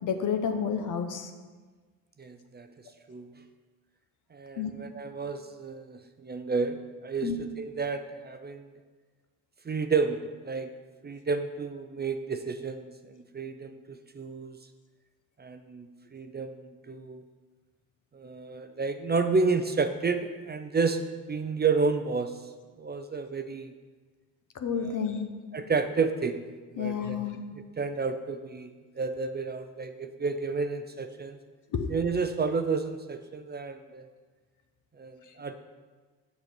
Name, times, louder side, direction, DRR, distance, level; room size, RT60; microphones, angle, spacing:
voice 1, 0.0-1.3 4.6-4.7 7.2-7.4 24.5-25.3 26.8-27.4 31.7-31.9, left 7 dB, 55° left, 6 dB, 1.0 m, -30 dB
voice 2, 2.2-2.7 3.1-3.3 4.3-8.7 9.7-10.7 11.0-14.6 15.4-17.2 18.1-22.3 22.8-23.7 24.8-24.9 25.5-26.4 26.7-27.2 27.8-28.7 29.0-31.4 31.9-34.1 35.0-35.6, right 4 dB, 25° right, 8 dB, 0.6 m, -31 dB
6.8 x 5.7 x 6.0 m, 1.4 s
supercardioid pair, 70°, 37 cm